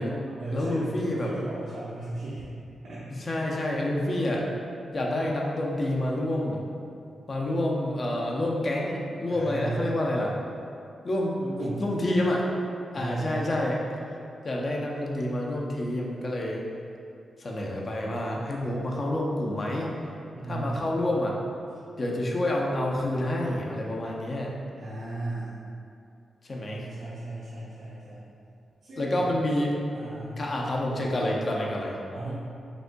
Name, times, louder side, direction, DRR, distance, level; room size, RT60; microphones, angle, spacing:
voice 1, 0.0-2.5 2.8-3.1 9.3-9.9 11.4-11.8 12.9-13.5 20.3-20.8 24.8-25.5 26.7-28.3 28.8-29.3 29.9-30.5 32.1-32.3, right 2 dB, 85° right, -9 dB, 0.7 m, -36 dB
voice 2, 0.5-1.3 3.3-4.4 4.9-6.6 7.3-10.3 11.0-11.3 11.8-12.4 12.9-13.8 14.4-16.6 17.4-19.9 20.5-21.3 22.0-24.5 26.4-26.9 29.0-29.8 30.4-31.9, left 1 dB, 35° left, -2 dB, 0.6 m, -28 dB
5.1 x 3.6 x 2.2 m, 2.5 s
wide cardioid pair, 135°, 0 cm